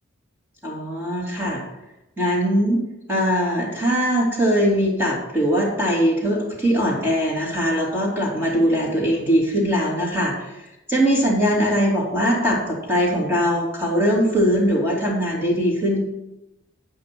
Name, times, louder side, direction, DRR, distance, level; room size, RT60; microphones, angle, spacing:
voice 1, 0.6-1.6 2.2-2.8 3.1-16.0, equal, 10° right, -4 dB, 2.5 m, -21 dB
9.0 x 5.3 x 5.9 m, 0.93 s
head